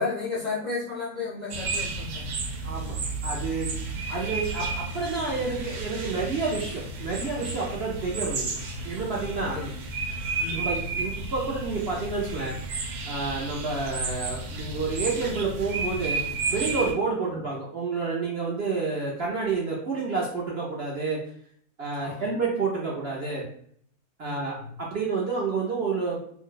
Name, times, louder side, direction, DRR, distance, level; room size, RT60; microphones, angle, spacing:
voice 1, 0.0-2.7 4.1-4.3 9.5-9.7 10.4-10.7 17.3-17.4 22.0-22.3 24.2-24.8, left 4 dB, 55° left, -7 dB, 0.5 m, -34 dB
sound 1, 1.5-16.9, right 3 dB, 90° right, 1.1 m, -32 dB
voice 2, 2.6-2.9 3.2-3.7 4.1-8.5 8.8-9.7 10.5-12.8 13.1-21.2 21.8-23.4 24.2-26.2, right 4 dB, 60° right, -4 dB, 0.7 m, -29 dB
2.6 x 2.2 x 3.8 m, 0.63 s
omnidirectional pair, 1.6 m